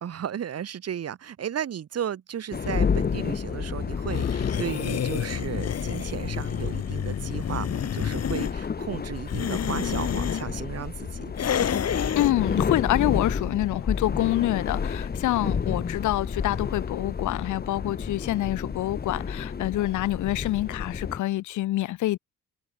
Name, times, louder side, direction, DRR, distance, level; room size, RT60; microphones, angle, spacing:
voice 1, 0.0-11.3, right 9 dB, 55° right, 2.1 m, -34 dB
sound 1, 2.5-21.2, left 6 dB, 30° left, 1.3 m, -31 dB
sound 2, 4.1-8.5 9.2-10.4 11.3-12.3, left 9 dB, 55° left, 3.9 m, -29 dB
voice 2, 12.1-22.2, left 15 dB, 75° left, 0.9 m, -26 dB
cardioid pair, 90°, 30 cm